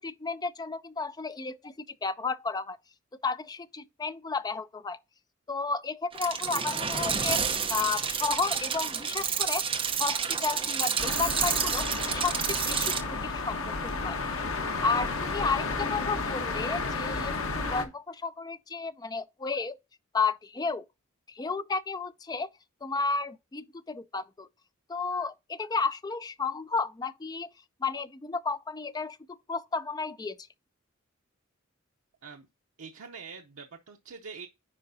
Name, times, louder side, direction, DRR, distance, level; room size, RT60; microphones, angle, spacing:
voice 1, 0.0-1.7 2.0-2.8 3.2-5.0 5.5-7.4 7.7-9.6 10.0-13.6 13.8-14.4 14.8-17.4 17.7-19.8 20.1-20.8 21.3-22.5 22.8-24.5 24.9-27.5 27.8-30.4, left 4 dB, 20° left, 0.4 m, -32 dB
sound 1, 6.1-13.0, right 7 dB, 25° right, 0.8 m, -29 dB
sound 2, 11.0-17.9, left 3 dB, 85° left, 1.3 m, -32 dB
voice 2, 32.8-34.5, right 5 dB, 80° right, 0.7 m, -44 dB
9.8 x 4.8 x 2.7 m
head